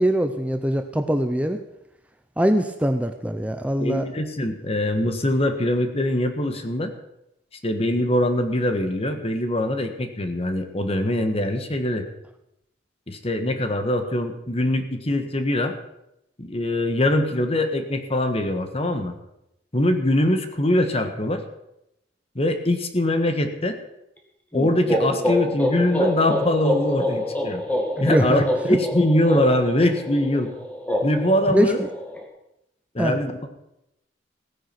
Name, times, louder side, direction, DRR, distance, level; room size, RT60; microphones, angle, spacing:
voice 1, 0.0-1.6 2.4-4.0 28.0-28.4 31.5-31.7 33.0-33.1, equal, 10° right, 7 dB, 0.7 m, -22 dB
voice 2, 3.8-6.9 7.6-12.0 13.1-15.8 16.4-19.1 19.7-21.4 22.3-23.8 24.5-27.6 28.0-30.5 31.0-31.8 32.9-33.5, left 1 dB, 35° left, 7 dB, 1.5 m, -23 dB
sound 1, 24.5-32.2, left 1 dB, 10° left, 2.1 m, -26 dB
16.0 x 9.8 x 5.9 m, 0.84 s
head